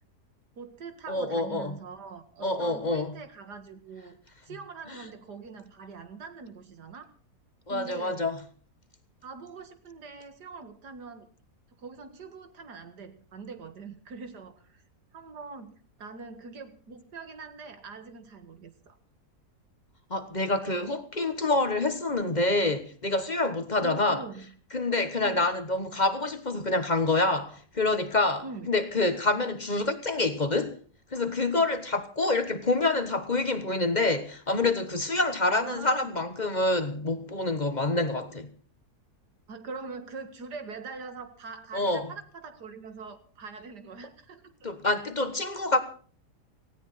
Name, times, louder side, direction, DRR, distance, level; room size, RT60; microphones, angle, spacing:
voice 1, 0.6-4.2 4.5-7.1 7.7-8.2 9.2-11.3 11.8-14.8 15.1-19.0 23.8-24.5 25.2-25.5 28.4-28.7 35.5-36.1 39.5-44.7, right 4 dB, 85° right, 2.4 m, -43 dB
voice 2, 1.1-1.8 2.4-3.1 7.7-8.4 20.1-24.2 24.7-30.8 31.1-38.5 41.7-42.1 44.6-45.8, left 2 dB, 30° left, 1.2 m, -27 dB
18.0 x 16.5 x 4.2 m
omnidirectional pair, 1.7 m